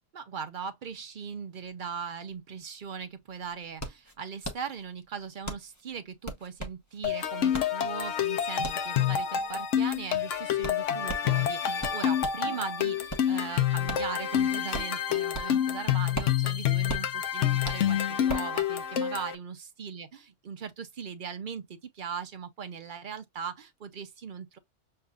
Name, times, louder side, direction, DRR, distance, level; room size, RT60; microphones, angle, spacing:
voice 1, 0.1-20.1 20.4-24.6, right 6 dB, 55° right, 0.6 m, -39 dB
sound 1, 3.2-12.5 12.9-15.7 16.0-18.6, right 1 dB, 15° left, 0.8 m, -39 dB
sound 2, 7.0-19.3, left 10 dB, 65° left, 1.0 m, -28 dB
6.6 x 2.5 x 2.3 m
omnidirectional pair, 1.5 m